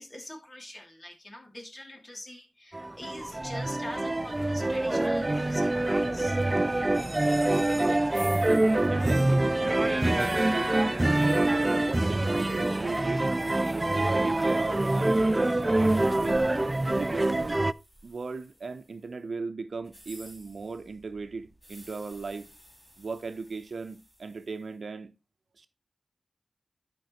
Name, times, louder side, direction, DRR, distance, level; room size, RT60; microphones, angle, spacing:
voice 1, 0.0-6.4, left 1 dB, 30° left, 2.7 m, -44 dB
sound 1, 2.7-17.7, right 2 dB, 20° right, 0.3 m, -25 dB
sound 2, 8.1-19.1 19.8-24.6, equal, 5° left, 4.6 m, -52 dB
voice 2, 8.9-10.9 11.2-13.3 13.7-16.5 16.8-17.6 18.0-22.5 23.0-25.1 25.6-25.7, right 4 dB, 65° right, 0.8 m, -37 dB
12.0 x 5.3 x 3.1 m
wide cardioid pair, 75°, 0 cm